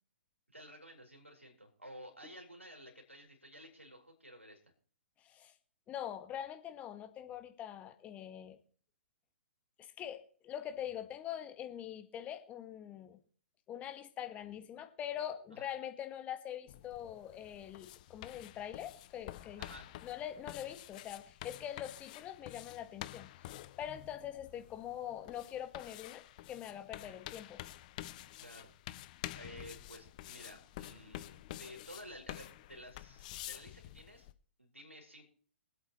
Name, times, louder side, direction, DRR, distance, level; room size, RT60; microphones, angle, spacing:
voice 1, 0.5-4.6 15.5-15.7 19.6-19.9 27.0-27.2 28.4-28.7 29.4-34.3 34.6-35.2, equal, 90° right, 1 dB, 3.7 m, -53 dB
voice 2, 5.9-8.6 9.8-13.2 13.7-19.7 20.0-27.6, left 10 dB, 20° left, 8 dB, 1.4 m, -44 dB
sound 1, 16.7-34.3, left 15 dB, 35° left, 0.7 m, -49 dB
24.0 x 8.4 x 3.1 m, 0.44 s
figure-of-eight pair, 120°, 7 cm